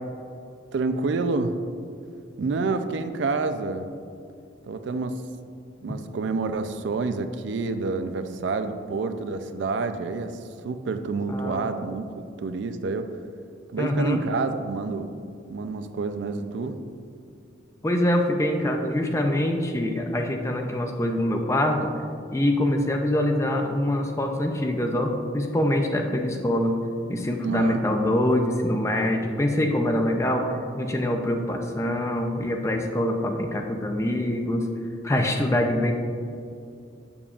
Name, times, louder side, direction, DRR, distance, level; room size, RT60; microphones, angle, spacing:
voice 1, 0.7-1.5 2.4-3.9 4.6-5.2 5.8-13.1 13.7-15.1 15.5-16.8 27.4-27.8, right 3 dB, 70° right, 9 dB, 0.4 m, -28 dB
voice 2, 11.3-11.7 13.8-14.2 17.8-21.9 22.3-26.8 27.1-30.5 30.8-34.7 35.0-35.9, left 1 dB, 15° left, 3 dB, 0.4 m, -24 dB
7.0 x 6.9 x 2.4 m, 2.4 s
head